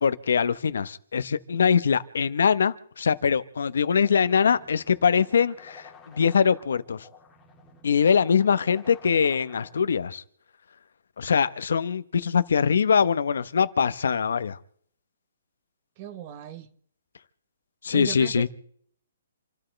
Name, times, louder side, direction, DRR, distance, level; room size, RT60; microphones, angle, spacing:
voice 1, 0.0-7.1 7.8-10.2 11.2-14.6 17.8-18.5, left 6 dB, 75° left, 1.1 m, -23 dB
sound 1, 4.0-10.0, left 5 dB, 10° left, 2.3 m, -51 dB
voice 2, 16.0-16.7 17.9-18.5, right 10 dB, 30° right, 1.2 m, -36 dB
28.5 x 13.0 x 3.4 m
hypercardioid pair, 160°, 0 cm